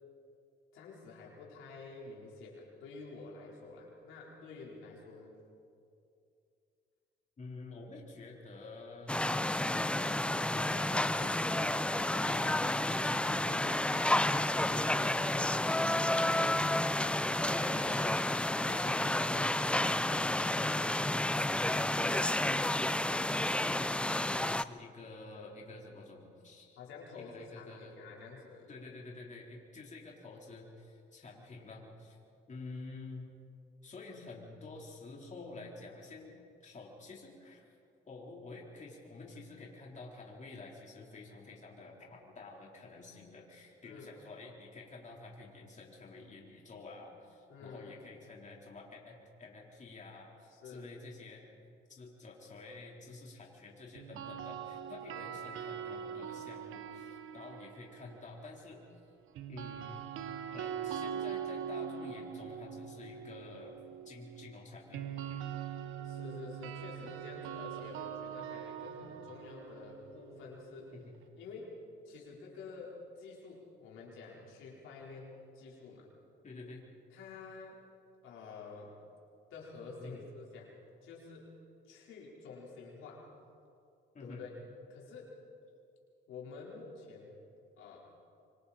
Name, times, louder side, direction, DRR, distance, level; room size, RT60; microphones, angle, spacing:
voice 1, 0.7-5.3 11.5-11.6 26.8-28.7 43.8-44.1 47.5-48.0 50.5-50.8 55.1-55.2 66.0-70.9 71.4-71.8 72.0-76.1 77.1-77.8 78.2-79.0 79.5-80.7 81.0-81.5 81.8-83.3 84.2-84.6 84.9-85.4 86.3-87.3 87.8-88.0, left 4 dB, 90° left, -4 dB, 4.5 m, -49 dB
voice 2, 7.4-13.8 14.2-15.1 15.3-22.5 22.9-26.8 27.2-27.9 28.7-32.2 32.5-33.2 33.8-37.6 38.1-51.5 51.9-58.8 59.5-63.8 64.1-65.0 70.9-71.1 72.1-72.2 76.4-76.8 80.0-80.2 84.1-84.5, left 3 dB, 40° left, -2 dB, 4.0 m, -49 dB
sound 1, 9.1-24.6, left 1 dB, 5° left, 0.5 m, -31 dB
sound 2, 10.6-12.8 13.3-15.5 16.0-18.2 18.7-20.9, left 10 dB, 70° left, 0.9 m, -48 dB
sound 3, 53.9-58.1 59.3-71.2, right 8 dB, 90° right, 1.1 m, -42 dB
25.5 x 25.5 x 4.4 m, 2.5 s
cardioid pair, 90°, 20 cm